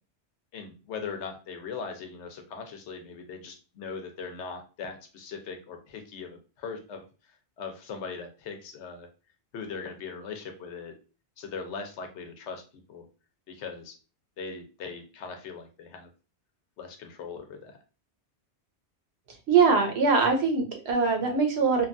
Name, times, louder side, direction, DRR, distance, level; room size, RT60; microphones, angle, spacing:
voice 1, 0.5-7.1 7.6-9.1 9.5-10.9 11.4-12.6 12.9-13.1 13.5-13.9 14.4-16.1 16.8-17.8, left 5 dB, 80° left, 5 dB, 0.9 m, -39 dB
voice 2, 19.5-21.9, right 5 dB, 70° right, 4 dB, 0.9 m, -22 dB
2.8 x 2.3 x 2.5 m, 0.34 s
omnidirectional pair, 1.2 m